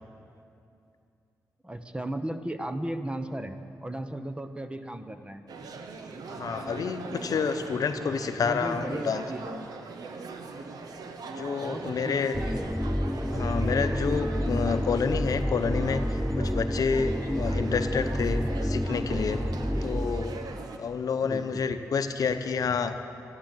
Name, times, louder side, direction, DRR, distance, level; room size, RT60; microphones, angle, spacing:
voice 1, 1.6-5.4 8.4-9.7 11.6-12.7 20.5-20.6 21.2-21.6, right 1 dB, 15° right, 9 dB, 1.0 m, -36 dB
sound 1, 5.5-20.8, right 4 dB, 75° right, 1.1 m, -41 dB
voice 2, 6.3-9.2 11.4-12.4 13.3-19.5 19.8-20.4 20.8-23.0, left 5 dB, 65° left, 8 dB, 0.8 m, -29 dB
sound 2, 12.3-20.7, equal, 5° left, 0.3 m, -29 dB
13.5 x 11.5 x 7.6 m, 2.6 s
cardioid pair, 55°, 7 cm